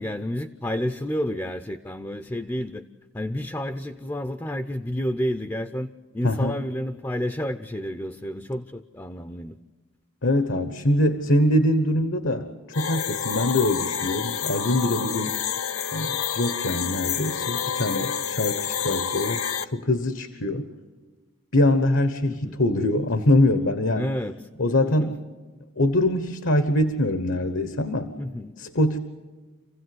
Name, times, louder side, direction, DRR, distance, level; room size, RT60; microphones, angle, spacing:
voice 1, 0.0-2.8 3.1-9.6 22.3-22.6 23.9-24.4 24.8-25.1 28.2-28.5, equal, 15° left, 9 dB, 0.6 m, -30 dB
voice 2, 6.2-6.6 10.2-15.3 15.9-19.4 19.7-20.7 21.5-24.1 24.6-25.2 25.8-28.1 28.6-29.0, left 1 dB, 65° left, 10 dB, 1.2 m, -23 dB
sound 1, 12.7-19.6, left 8 dB, 90° left, 0.8 m, -28 dB
27.0 x 16.5 x 7.8 m, 1.4 s
head